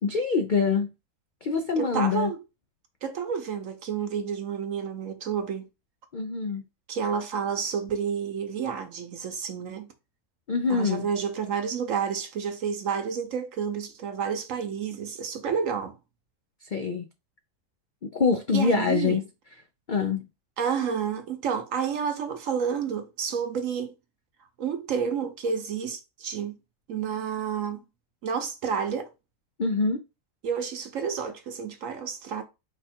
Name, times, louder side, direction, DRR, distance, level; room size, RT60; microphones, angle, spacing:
voice 1, 0.0-0.9 1.4-2.3 6.1-6.6 10.5-11.1 16.6-17.1 18.1-19.2 19.9-20.3 29.6-30.0, left 5 dB, 80° left, 0.4 m, -25 dB
voice 2, 1.8-2.4 3.0-5.7 6.9-9.9 10.7-16.0 18.5-19.2 20.6-23.9 24.6-26.5 26.9-27.8 28.2-29.1 30.4-32.4, right 7 dB, 65° right, 1.1 m, -30 dB
4.8 x 2.4 x 4.3 m
omnidirectional pair, 1.6 m